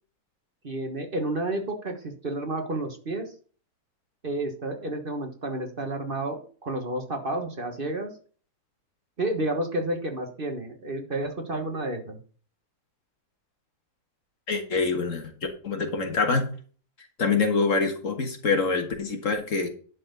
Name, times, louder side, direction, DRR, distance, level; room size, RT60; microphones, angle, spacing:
voice 1, 0.6-3.3 4.2-8.1 9.2-12.2, right 1 dB, 40° right, 4 dB, 1.5 m, -31 dB
voice 2, 14.5-15.3 15.6-16.4 17.2-19.7, left 4 dB, 60° left, 5 dB, 1.8 m, -25 dB
11.0 x 4.3 x 6.7 m, 0.43 s
omnidirectional pair, 1.5 m